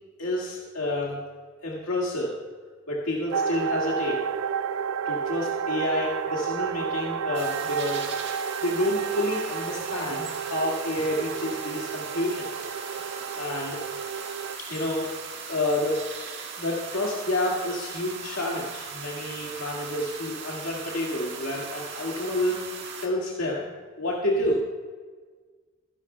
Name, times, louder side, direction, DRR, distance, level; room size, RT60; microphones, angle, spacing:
voice 1, 0.2-1.2 1.6-2.4 2.9-4.2 5.1-8.1 8.6-12.7 13.3-13.8 14.7-16.0 16.6-22.7 23.0-23.6 24.0-24.6, left 1 dB, 85° left, -4 dB, 2.0 m, -29 dB
sound 1, 3.3-14.6, right 7 dB, 80° right, 0.4 m, -31 dB
sound 2, 7.3-23.1, right 5 dB, 55° right, 1.7 m, -38 dB
23.5 x 11.5 x 2.3 m, 1.4 s
head